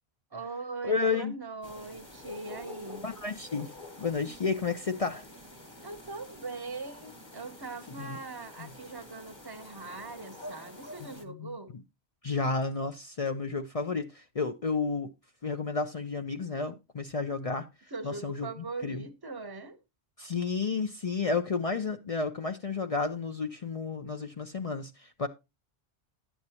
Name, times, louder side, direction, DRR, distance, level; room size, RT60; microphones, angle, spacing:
voice 1, 0.3-3.1 5.8-11.7 17.9-19.8, right 3 dB, 25° right, 0.8 m, -41 dB
voice 2, 0.8-1.3 3.0-3.7 4.0-5.3 8.0-8.2 8.6-8.7 11.3-11.5 12.2-15.1 15.4-17.7 18.0-18.5 18.8-19.0 20.2-25.3, left 4 dB, 45° left, 0.5 m, -31 dB
sound 1, 1.6-11.2, left 2 dB, 25° left, 1.1 m, -48 dB
10.5 x 8.0 x 2.8 m
omnidirectional pair, 1.1 m